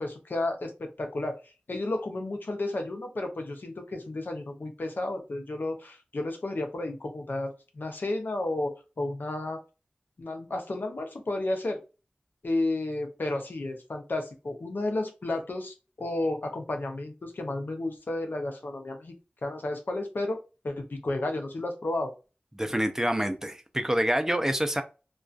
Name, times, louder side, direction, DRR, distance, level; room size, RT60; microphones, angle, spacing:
voice 1, 0.0-9.6 10.2-11.8 12.4-19.1 19.4-20.4 20.6-22.1, left 2 dB, 70° left, 4 dB, 0.6 m, -32 dB
voice 2, 22.6-24.8, equal, 15° right, 8 dB, 0.4 m, -27 dB
2.3 x 2.3 x 2.4 m, 0.31 s
wide cardioid pair, 45°, 3 cm